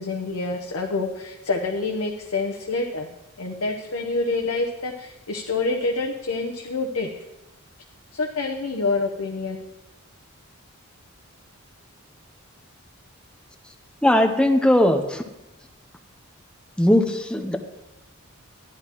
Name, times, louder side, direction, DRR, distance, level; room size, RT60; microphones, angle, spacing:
voice 1, 0.0-3.1 3.4-7.2 8.1-9.6, left 3 dB, 75° left, 2 dB, 0.8 m, -27 dB
voice 2, 14.0-15.2 16.8-17.6, left 1 dB, 5° left, 5 dB, 0.6 m, -19 dB
12.0 x 10.5 x 3.0 m, 0.97 s
head